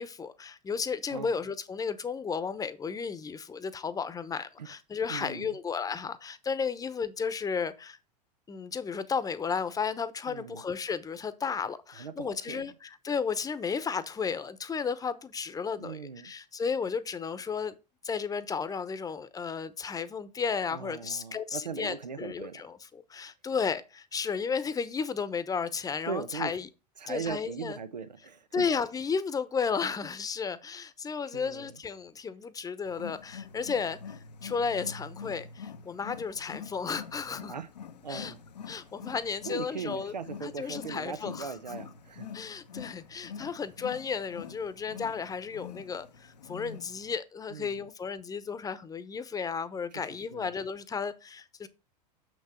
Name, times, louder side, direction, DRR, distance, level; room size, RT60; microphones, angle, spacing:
voice 1, 0.0-8.0 8.5-17.8 18.0-26.7 27.1-27.8 28.5-37.5 38.1-38.3 38.7-40.1 40.4-41.5 42.3-51.7, left 5 dB, 15° left, 0.9 m, -33 dB
voice 2, 5.1-5.5 10.3-10.7 12.0-12.7 15.8-16.3 20.7-22.7 26.1-26.6 27.0-28.7 31.3-31.8 37.5-37.7 38.0-38.4 39.4-42.3 43.5-43.6 47.5-47.9 49.9-50.5, right 5 dB, 90° right, 0.7 m, -39 dB
Wild animals, 32.8-47.1, left 6 dB, 80° left, 0.8 m, -45 dB
6.9 x 6.2 x 4.4 m
hypercardioid pair, 90°, 21 cm